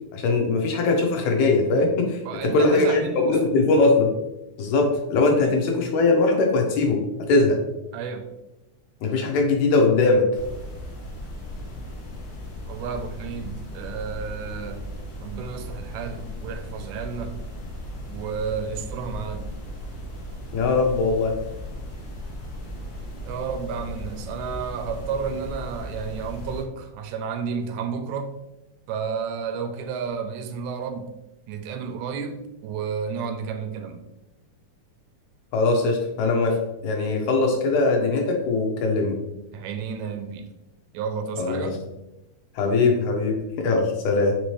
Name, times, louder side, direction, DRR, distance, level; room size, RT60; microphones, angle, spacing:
voice 1, 0.1-4.1 4.6-7.0 7.3-7.6 9.0-10.3 20.5-21.3 35.5-39.2 41.4-41.8 42.6-44.4, left 3 dB, 85° left, 2 dB, 2.1 m, -21 dB
voice 2, 2.3-3.4 5.4-5.5 7.9-8.3 12.7-14.9 15.2-17.4 18.1-19.6 23.2-28.4 28.9-31.2 31.5-34.1 39.5-40.5 40.9-41.8, right 6 dB, 85° right, 7 dB, 2.0 m, -31 dB
sound 1, 10.3-26.6, equal, 65° left, 1.2 m, -36 dB
5.2 x 2.8 x 3.0 m, 0.93 s
omnidirectional pair, 3.3 m